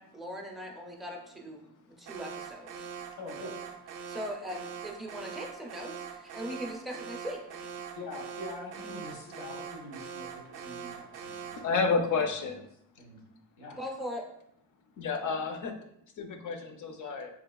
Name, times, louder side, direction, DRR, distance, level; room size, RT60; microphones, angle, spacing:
voice 1, 0.0-2.9 4.1-7.7 13.8-14.3, equal, ahead, 1 dB, 0.4 m, -40 dB
Alarm, 2.1-11.7, right 7 dB, 55° right, 0.5 m, -43 dB
voice 2, 3.2-3.6 8.0-12.6 12.9-13.2 13.6-13.8, left 2 dB, 80° left, -1 dB, 1.1 m, -45 dB
voice 3, 11.6-12.7 15.0-15.7 16.2-17.3, left 4 dB, 50° left, 6 dB, 0.5 m, -30 dB
3.8 x 2.7 x 2.2 m, 0.74 s
cardioid pair, 115°, 39 cm